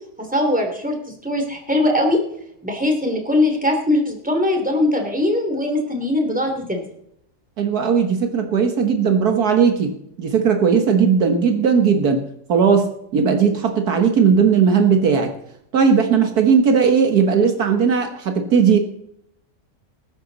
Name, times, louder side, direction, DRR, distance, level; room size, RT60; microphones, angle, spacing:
voice 1, 0.2-0.9 1.2-2.2 2.6-6.8, left 1 dB, 5° right, 2 dB, 2.8 m, -20 dB
voice 2, 7.6-9.9 10.2-12.2 12.5-15.3 15.7-18.8, right 6 dB, 70° right, 5 dB, 1.7 m, -17 dB
19.5 x 10.5 x 4.0 m, 0.75 s
omnidirectional pair, 1.7 m